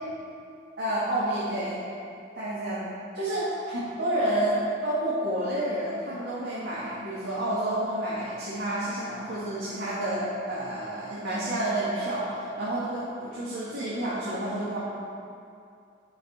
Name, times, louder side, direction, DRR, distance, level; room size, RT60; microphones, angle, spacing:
voice 1, 0.8-1.8 2.3-2.9 3.1-14.8, right 1 dB, 70° right, -9 dB, 1.5 m, -29 dB
9.5 x 5.4 x 4.1 m, 2.4 s
head